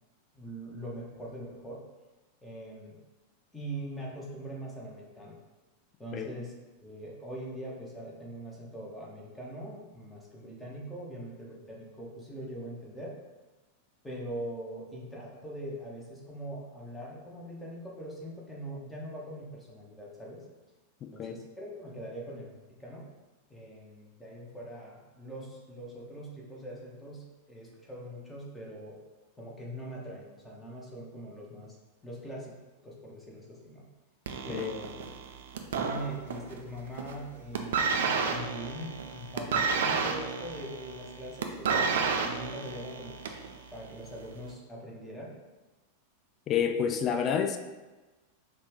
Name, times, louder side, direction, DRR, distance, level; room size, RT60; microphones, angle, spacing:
voice 1, 0.3-1.8 2.4-3.0 3.5-5.4 6.0-6.6 6.8-13.2 14.0-20.5 21.1-23.1 23.5-29.0 29.4-31.8 32.0-32.5 32.8-33.8 34.4-35.1 35.7-41.9 42.2-43.2 43.7-45.4, right 1 dB, 10° left, -4 dB, 1.1 m, -42 dB
sound 1, 34.3-36.6 36.9-37.2 37.5-43.5 44.3-44.4, right 5 dB, 60° right, 0.5 m, -30 dB
voice 2, 46.5-47.6, left 8 dB, 30° left, 6 dB, 0.4 m, -28 dB
5.5 x 2.5 x 3.5 m, 1.2 s
figure-of-eight pair, 90°, 0 cm